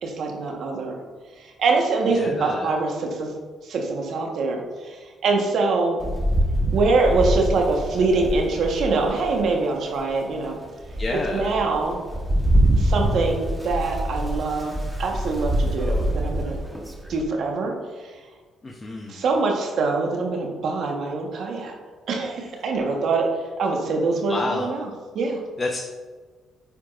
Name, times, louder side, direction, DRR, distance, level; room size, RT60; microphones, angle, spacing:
voice 1, 0.0-1.0 1.4-3.3 3.6-6.0 6.7-10.6 11.3-12.0 12.8-16.6 17.1-17.7 19.1-21.7 22.1-23.3 23.6-24.9 25.1-25.4, right 3 dB, 70° right, 1 dB, 1.2 m, -24 dB
voice 2, 2.1-2.7 11.0-11.5 18.6-19.2 24.3-24.7 25.6-25.8, left 2 dB, 25° left, 0 dB, 0.7 m, -29 dB
Rain, 6.0-9.5 10.1-10.2 10.6-17.2, right 1 dB, 10° right, 1.1 m, -25 dB
8.5 x 4.7 x 2.5 m, 1.4 s
cardioid pair, 90°, 0 cm